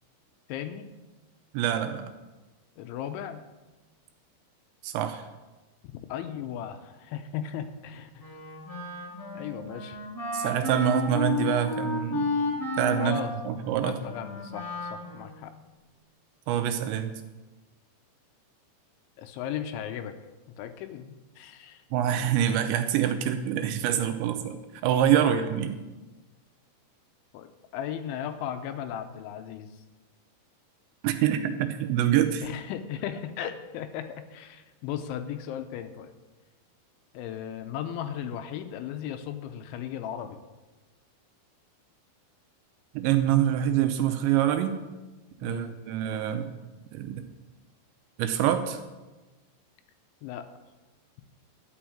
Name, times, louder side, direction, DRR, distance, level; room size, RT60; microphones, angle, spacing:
voice 1, 0.5-0.9 2.8-3.4 6.1-8.3 9.3-10.0 13.0-13.3 13.6-15.5 19.2-20.1 20.6-21.8 25.2-25.4 27.3-29.8 32.4-36.1 37.1-40.4 45.4-45.8 50.2-50.5, left 9 dB, 85° left, 9 dB, 3.0 m, -36 dB
voice 2, 1.5-2.1 4.8-5.3 10.3-12.4 12.8-13.2 13.5-14.0 16.5-17.1 21.9-24.6 24.8-25.8 31.0-32.4 42.9-44.8 45.4-46.5 46.9-47.2 48.2-48.8, right 10 dB, 85° right, 7 dB, 2.8 m, -25 dB
Wind instrument woodwind instrument, 8.2-15.5, left 2 dB, 5° left, 3.2 m, -32 dB
11.5 x 6.3 x 8.6 m, 1.2 s
omnidirectional pair, 5.5 m